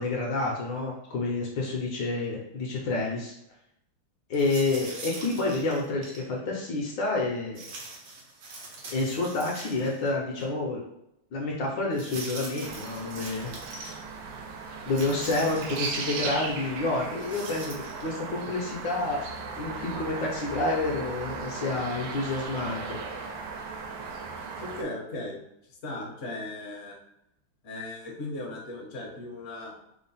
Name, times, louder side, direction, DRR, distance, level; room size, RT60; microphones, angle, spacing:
voice 1, 0.0-3.3 4.3-7.6 8.9-10.8 11.3-13.5 14.9-17.7 18.0-23.0, left 2 dB, 70° left, -1 dB, 1.3 m, -29 dB
sound 1, 4.3-6.3 7.5-10.1 10.4-10.5 11.9-14.0 14.9-16.1 17.0-18.1, right 3 dB, 65° right, 0.8 m, -42 dB
sound 2, 12.6-24.8, right 4 dB, 85° right, 1.5 m, -37 dB
voice 2, 24.6-25.4 25.8-27.0 27.6-29.7, left 2 dB, 55° left, -2 dB, 0.8 m, -37 dB
3.7 x 2.1 x 4.0 m, 0.81 s
omnidirectional pair, 2.4 m